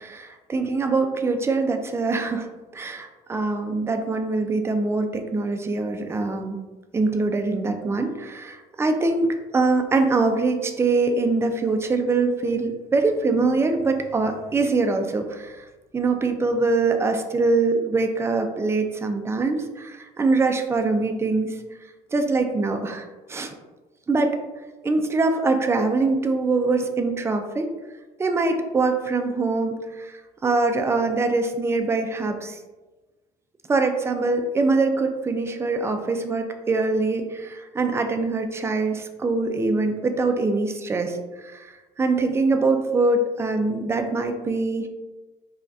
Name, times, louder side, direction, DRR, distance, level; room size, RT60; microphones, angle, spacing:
voice 1, 0.0-2.5 2.7-6.6 6.9-9.3 9.5-15.6 15.9-21.6 22.1-23.5 24.1-24.4 24.8-27.7 28.2-30.1 30.4-32.6 33.7-41.2 41.4-41.7 42.0-44.9, right 3 dB, 15° right, 5 dB, 0.4 m, -23 dB
5.5 x 2.2 x 2.6 m, 1.2 s
cardioid pair, 110°, 17 cm